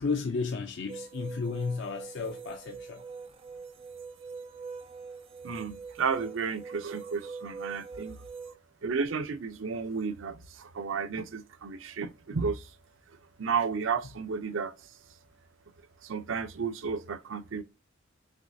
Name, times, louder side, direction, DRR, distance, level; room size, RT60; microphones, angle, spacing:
voice 1, 0.0-3.0, left 4 dB, 60° left, 0.5 m, -33 dB
sound 1, 0.9-8.5, right 4 dB, 30° right, 0.3 m, -43 dB
voice 2, 5.4-8.2 8.8-12.6 13.4-14.7 16.0-17.6, right 5 dB, 85° right, 0.6 m, -32 dB
6.0 x 3.1 x 2.6 m
head